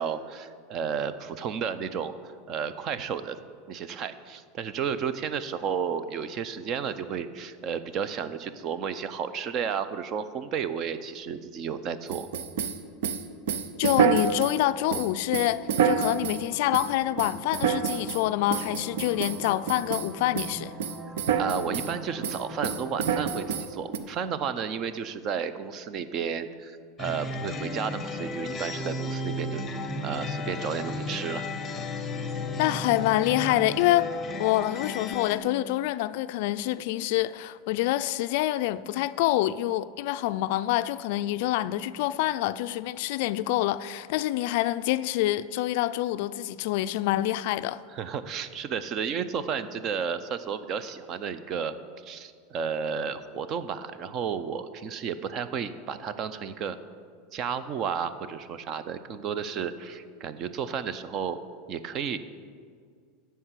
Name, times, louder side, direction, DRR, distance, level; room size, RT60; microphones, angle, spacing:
voice 1, 0.0-3.4 3.7-12.3 21.4-29.6 30.0-31.4 47.9-51.8 52.0-56.8 57.3-61.4 61.7-62.2, right 7 dB, 35° right, 0.5 m, -32 dB
sound 1, 12.1-14.6 14.9-16.4 16.7-16.9 17.2-18.2 18.5-20.1 20.4-20.5 20.8-21.9 22.2-24.0, right 7 dB, 80° right, 0.7 m, -27 dB
voice 2, 13.8-20.8 32.6-34.1 34.4-47.8, left 15 dB, 60° left, 0.3 m, -26 dB
sound 2, 15.9-23.7, right 1 dB, 10° right, 1.0 m, -44 dB
sound 3, 27.0-35.4, left 2 dB, 15° left, 0.8 m, -34 dB
12.0 x 4.6 x 8.1 m
supercardioid pair, 155°, 0 cm